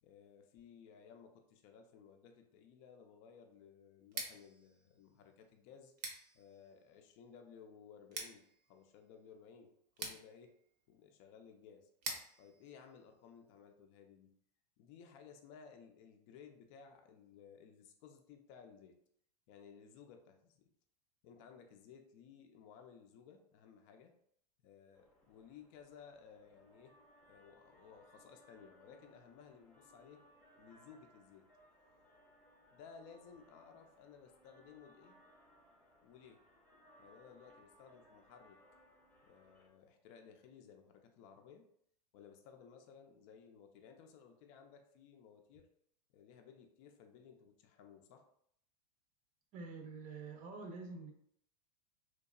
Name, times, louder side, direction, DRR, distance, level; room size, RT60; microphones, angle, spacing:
voice 1, 0.0-5.9 6.3-10.6 10.9-11.9 12.4-14.3 14.8-19.0 19.5-20.7 21.2-24.1 24.6-26.9 27.3-30.2 30.6-31.5 32.7-35.2 36.0-36.4 37.0-38.6 39.2-41.7 42.1-45.7 46.1-48.3, left 7 dB, 50° left, 4 dB, 0.5 m, -58 dB
Scissors, 4.0-13.8, right 3 dB, 70° right, 0.7 m, -50 dB
sound 1, 24.9-39.7, equal, 5° left, 0.7 m, -66 dB
voice 2, 49.5-51.1, right 4 dB, 35° right, 4 dB, 0.5 m, -47 dB
2.8 x 2.2 x 2.3 m, 0.67 s
hypercardioid pair, 110°, 21 cm